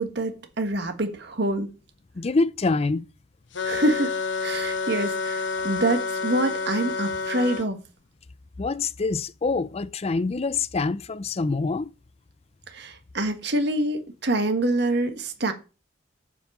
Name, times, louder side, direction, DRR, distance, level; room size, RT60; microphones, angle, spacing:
voice 1, 0.0-1.7 3.6-4.1 4.4-7.8 12.7-15.5, right 1 dB, 60° right, 1.4 m, -26 dB
voice 2, 2.2-3.0 8.6-11.9, left 3 dB, 30° left, 0.4 m, -25 dB
sound 1, 3.5-7.7, left 4 dB, 65° left, 1.0 m, -29 dB
7.4 x 5.5 x 7.2 m
head